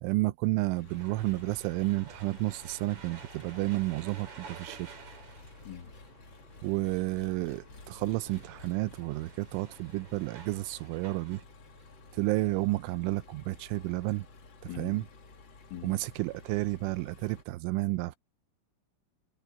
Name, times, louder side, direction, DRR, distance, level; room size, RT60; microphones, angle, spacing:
voice 1, 0.0-4.9 6.6-11.4 12.1-14.3 14.8-15.0 15.8-18.2, right 19 dB, 80° right, 2.9 m, -31 dB
Engine, 0.7-17.4, left 3 dB, 45° left, 1.6 m, -53 dB
sound 1, 0.9-11.4, right 6 dB, 40° right, 3.8 m, -52 dB
voice 2, 14.7-15.0 15.7-16.0, left 11 dB, 75° left, 4.2 m, -42 dB
omnidirectional pair, 5.9 m